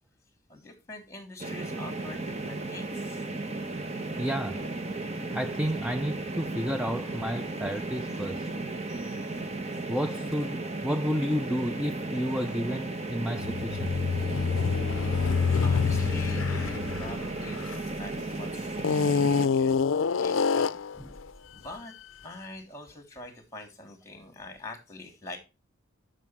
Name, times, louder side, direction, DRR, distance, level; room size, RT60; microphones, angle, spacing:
voice 1, 0.5-3.2 8.9-9.4 15.5-20.8 21.5-21.9 22.2-25.4, left 2 dB, 15° left, 3.3 m, -45 dB
sound 1, 1.4-19.5, right 2 dB, 30° right, 1.0 m, -35 dB
voice 2, 4.2-4.7 5.3-8.5 9.9-14.0, equal, 5° right, 0.4 m, -31 dB
sound 2, 13.3-18.2 18.8-21.0, left 5 dB, 75° left, 0.4 m, -26 dB
11.5 x 6.7 x 4.5 m
head